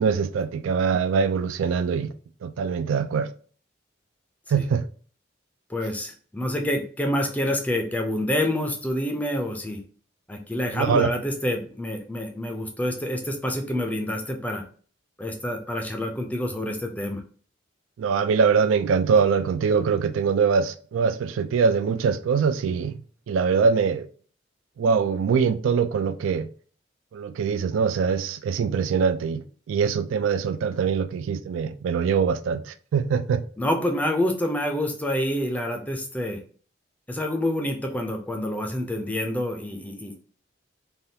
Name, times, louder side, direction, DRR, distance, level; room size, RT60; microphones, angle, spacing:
voice 1, 0.0-2.1 2.4-3.3 4.5-4.8 10.7-11.1 18.0-23.0 23.3-24.1 24.8-26.5 27.1-33.4, right 6 dB, 90° right, 0.3 m, -23 dB
voice 2, 5.7-9.8 10.3-14.6 15.2-17.2 33.6-36.4 37.1-40.2, left 1 dB, 10° left, 0.4 m, -27 dB
3.4 x 2.3 x 2.7 m
head